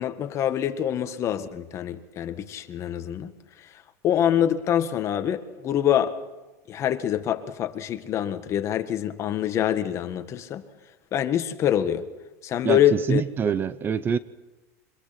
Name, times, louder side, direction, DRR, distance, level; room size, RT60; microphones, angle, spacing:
voice 1, 0.0-3.3 3.6-3.7 4.0-6.2 6.7-10.6 11.1-12.1 12.4-13.2, left 10 dB, 35° left, 1.7 m, -25 dB
voice 2, 12.6-14.2, right 7 dB, 25° right, 0.7 m, -25 dB
25.0 x 21.5 x 6.0 m
supercardioid pair, 140°, 8 cm